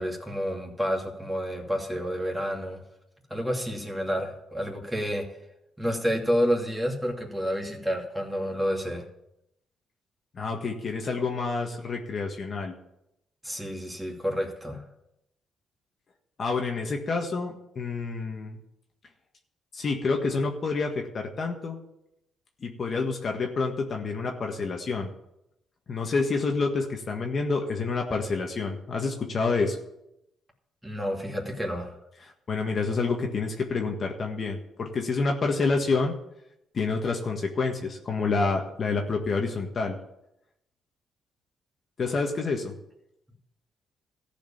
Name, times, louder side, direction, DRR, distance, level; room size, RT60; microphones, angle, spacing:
voice 1, 0.0-2.8 3.3-5.3 5.8-9.0 13.4-14.8 30.8-31.9, equal, 5° right, 0 dB, 2.7 m, -29 dB
voice 2, 10.3-12.7 16.4-18.6 19.7-21.8 22.6-25.1 25.9-29.8 32.5-36.1 36.7-40.0 42.0-42.7, left 4 dB, 45° left, 2 dB, 1.6 m, -28 dB
14.0 x 5.0 x 8.7 m, 0.83 s
cardioid pair, 90°, 0 cm